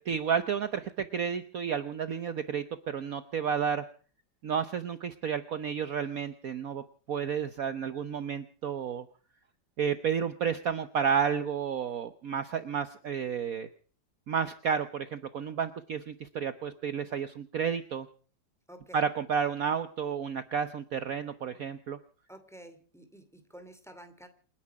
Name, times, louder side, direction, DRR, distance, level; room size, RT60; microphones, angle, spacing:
voice 1, 0.0-3.9 4.4-9.1 9.8-13.7 14.3-18.1 18.9-22.0, right 7 dB, 55° right, 11 dB, 1.2 m, -31 dB
voice 2, 18.7-19.0 22.3-24.3, right 1 dB, ahead, 9 dB, 2.5 m, -50 dB
28.5 x 10.5 x 4.8 m, 0.42 s
omnidirectional pair, 2.0 m